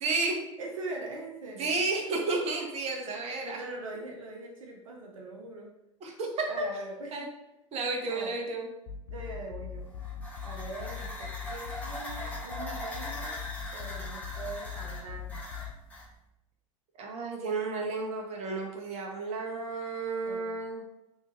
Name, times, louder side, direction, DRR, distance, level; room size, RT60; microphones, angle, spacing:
voice 1, 0.0-0.4 1.6-3.6 6.0-6.7 7.1-7.3 7.7-8.7 17.0-20.8, right 3 dB, 40° right, 1 dB, 0.8 m, -32 dB
voice 2, 0.6-1.8 3.4-5.7 6.5-7.3 8.1-8.4 9.1-9.9 10.4-13.4 13.7-15.5 20.2-20.5, right 2 dB, 80° right, 0 dB, 0.5 m, -42 dB
sound 1, 8.9-15.7, left 7 dB, 65° left, 0.4 m, -41 dB
sound 2, 9.8-16.1, left 1 dB, 10° left, 1.1 m, -41 dB
3.4 x 2.7 x 2.9 m, 0.89 s
figure-of-eight pair, 80°, 17 cm